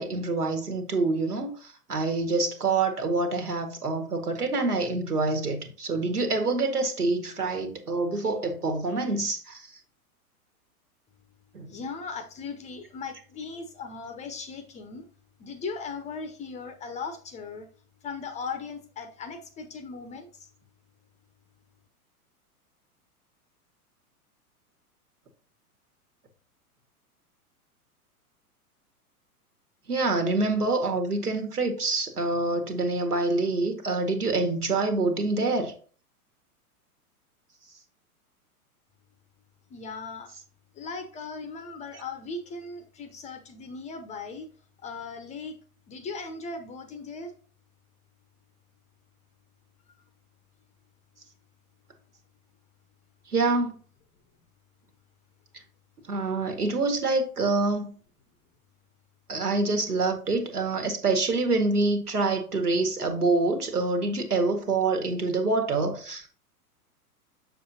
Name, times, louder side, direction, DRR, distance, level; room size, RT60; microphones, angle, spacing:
voice 1, 0.0-9.7 11.5-11.7 29.9-35.7 53.3-53.8 56.1-57.9 59.3-66.3, right 3 dB, 80° right, 1.9 m, -26 dB
voice 2, 11.7-15.1 15.4-17.7 18.0-20.5 39.7-40.3 40.7-44.5 44.8-45.6 45.9-47.3, left 4 dB, 15° left, 0.6 m, -38 dB
7.0 x 6.7 x 2.8 m
figure-of-eight pair, 100°, 46 cm